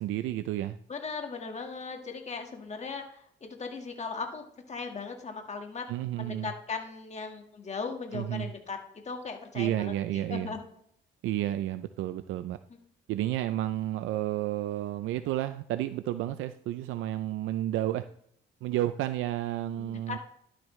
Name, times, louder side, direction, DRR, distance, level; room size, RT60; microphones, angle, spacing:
voice 1, 0.0-0.8 5.9-6.5 8.1-8.5 9.5-10.5 11.2-12.6 13.1-18.1 18.6-20.2, right 13 dB, 90° right, 11 dB, 0.5 m, -31 dB
voice 2, 0.9-5.8 6.2-8.8 9.0-10.6 19.8-20.2, left 4 dB, 35° left, 4 dB, 1.7 m, -38 dB
11.5 x 7.6 x 3.2 m, 0.70 s
cardioid pair, 90°, 20 cm